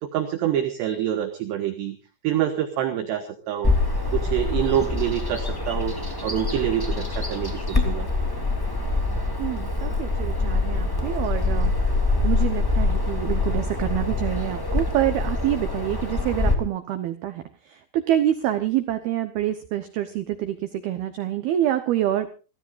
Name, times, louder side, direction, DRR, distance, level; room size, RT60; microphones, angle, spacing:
voice 1, 0.0-2.0 2.2-3.8 4.1-6.0 6.2-8.1, right 11 dB, 70° right, 7 dB, 3.1 m, -26 dB
Bird vocalization bird call bird song, 3.6-16.5, left 3 dB, 10° left, 1.0 m, -25 dB
voice 2, 9.4-11.7 12.2-22.4, right 12 dB, 85° right, 9 dB, 2.1 m, -26 dB
29.0 x 15.0 x 2.6 m, 0.35 s
omnidirectional pair, 6.0 m